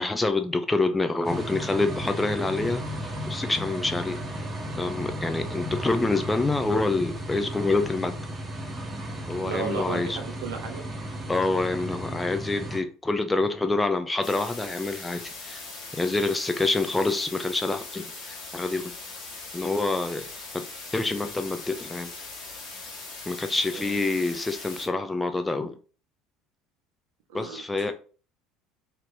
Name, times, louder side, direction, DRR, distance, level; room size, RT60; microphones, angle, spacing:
voice 1, 0.0-2.8 3.3-4.2 4.8-8.2 9.3-10.2 11.3-15.7 15.9-18.9 19.5-20.2 20.9-22.1 23.3-25.8 27.3-27.9, left 3 dB, 15° left, 0.4 m, -27 dB
sound 1, 1.2-12.8, equal, 25° right, 0.8 m, -34 dB
voice 2, 9.4-10.8 23.7-24.0 27.3-27.9, right 6 dB, 65° right, 0.6 m, -35 dB
sound 2, 14.2-24.9, left 3 dB, 60° left, 1.2 m, -40 dB
2.8 x 2.5 x 3.2 m
figure-of-eight pair, 65°, 0 cm